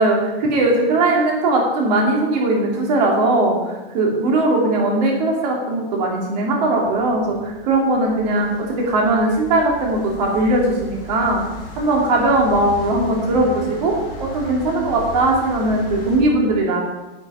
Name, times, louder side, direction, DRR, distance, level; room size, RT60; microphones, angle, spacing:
voice 1, 0.0-11.4 11.8-13.9 14.2-16.8, right 2 dB, 45° right, -1 dB, 3.0 m, -19 dB
sound 1, 6.6-16.2, left 1 dB, 15° left, 2.8 m, -37 dB
9.7 x 6.7 x 5.6 m, 1.1 s
supercardioid pair, 175°, 29 cm